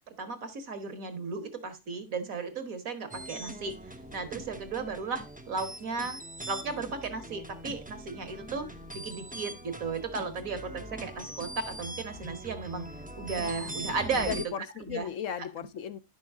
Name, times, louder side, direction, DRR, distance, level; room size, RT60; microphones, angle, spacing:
voice 1, 0.1-3.8 4.1-6.2 6.5-8.7 8.9-12.9 13.2-14.4 14.8-15.1 15.4-15.5, right 4 dB, 65° right, 1.9 m, -35 dB
sound 1, 3.1-14.5, right 1 dB, 10° right, 0.6 m, -42 dB
voice 2, 14.2-16.0, left 8 dB, 65° left, 0.9 m, -36 dB
10.5 x 6.2 x 3.5 m
omnidirectional pair, 1.5 m